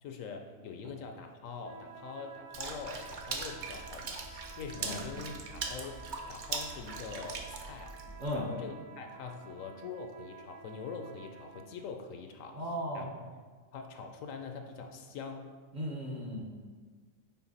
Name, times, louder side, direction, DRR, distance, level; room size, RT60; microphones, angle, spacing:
voice 1, 0.0-8.0 8.3-13.1 13.7-15.5, left 5 dB, 75° left, 5 dB, 0.9 m, -44 dB
sound 1, 1.6-11.8, right 6 dB, 90° right, 1.2 m, -51 dB
Water / Splash splatter, 2.5-8.3, right 4 dB, 55° right, 0.5 m, -41 dB
voice 2, 12.6-13.1 15.7-16.4, equal, 40° right, -2 dB, 0.9 m, -36 dB
5.9 x 4.3 x 4.1 m, 1.5 s
omnidirectional pair, 1.4 m